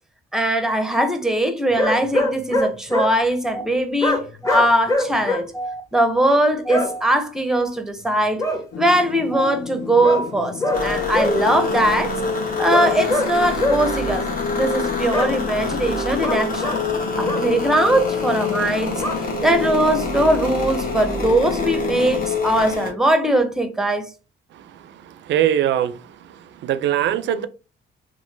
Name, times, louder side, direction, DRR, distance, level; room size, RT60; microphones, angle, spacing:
voice 1, 0.3-8.4 8.8-12.1 12.6-14.3 14.5-16.8 17.2-24.1, right 1 dB, ahead, 0.6 m, -20 dB
sound 1, 1.8-3.1 4.0-5.4 6.7-6.9 8.4-8.6 10.0-10.3 10.6-10.8 11.1-11.3 12.7-13.3 13.6-13.8 15.1-15.3 16.2-16.8 17.2-17.4 19.0-19.1, left 1 dB, 15° left, 0.9 m, -22 dB
sound 2, 8.7-22.4, left 7 dB, 65° left, 0.6 m, -35 dB
sound 3, 10.7-22.9, left 3 dB, 45° left, 1.1 m, -25 dB
voice 2, 25.3-25.9 26.6-27.5, right 11 dB, 65° right, 0.4 m, -20 dB
3.0 x 2.0 x 3.2 m
cardioid pair, 90°, 20 cm